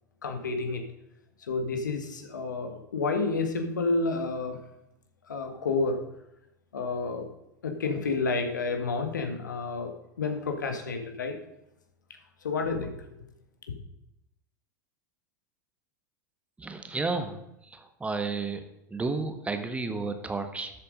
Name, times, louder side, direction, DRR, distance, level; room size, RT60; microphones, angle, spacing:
voice 1, 0.2-0.8 1.4-4.6 5.3-6.0 6.7-7.3 7.6-11.4 12.4-13.0, left 3 dB, 75° left, 6 dB, 1.9 m, -30 dB
voice 2, 16.6-17.4 17.7-18.6 18.9-20.7, right 3 dB, 15° right, 7 dB, 1.5 m, -32 dB
13.0 x 7.7 x 5.2 m, 0.85 s
figure-of-eight pair, 85°, 10 cm